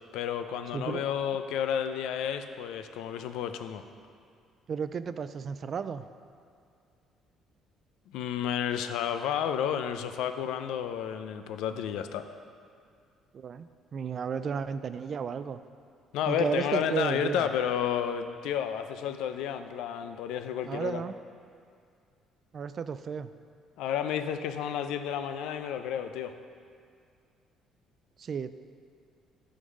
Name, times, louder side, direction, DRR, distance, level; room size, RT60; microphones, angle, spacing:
voice 1, 0.1-3.8 8.1-12.2 16.1-21.0 23.8-26.3, left 9 dB, 85° left, 9 dB, 0.5 m, -31 dB
voice 2, 0.7-1.0 4.7-6.0 13.3-15.6 16.3-17.5 20.6-21.1 22.5-23.3 28.2-28.5, right 6 dB, 40° right, 12 dB, 0.3 m, -33 dB
11.0 x 4.0 x 6.3 m, 2.3 s
cardioid pair, 140°, 0 cm